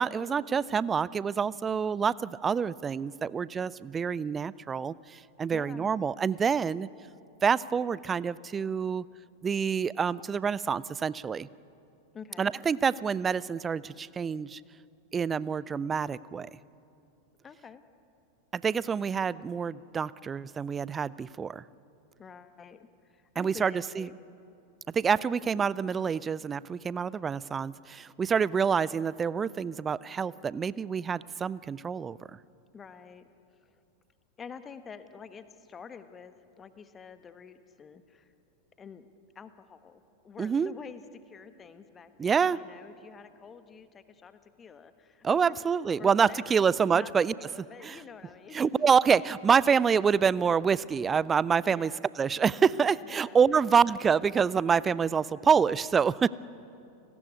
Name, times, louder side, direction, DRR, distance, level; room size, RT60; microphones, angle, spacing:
voice 1, 0.0-6.9 7.4-9.0 9.4-11.5 12.4-14.6 15.1-16.5 18.5-21.6 23.4-24.1 24.9-32.2 40.4-40.7 42.2-42.6 45.2-47.3 47.8-48.0 48.5-51.9 52.2-56.3, right 6 dB, 20° right, 21 dB, 0.5 m, -27 dB
voice 2, 5.5-5.9 12.1-12.5 17.4-17.8 22.2-24.2 32.7-33.3 33.6-33.8 34.4-38.3 38.8-39.1 39.3-45.6 46.0-48.6 51.7-52.0 53.0-53.6, left 6 dB, 20° left, 11 dB, 1.4 m, -48 dB
29.5 x 19.5 x 9.3 m, 2.7 s
figure-of-eight pair, 90°, 0 cm